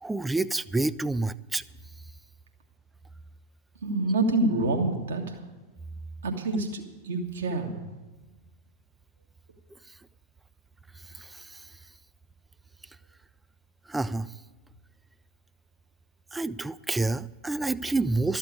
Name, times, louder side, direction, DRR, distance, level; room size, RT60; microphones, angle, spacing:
voice 1, 0.0-1.6 9.9-10.0 11.0-11.7 13.9-14.3 16.3-18.4, right 2 dB, 10° right, 17 dB, 0.3 m, -29 dB
voice 2, 3.8-5.4 6.2-7.7, right 2 dB, 65° right, 2 dB, 1.6 m, -27 dB
13.0 x 7.3 x 9.6 m, 1.2 s
figure-of-eight pair, 90°, 0 cm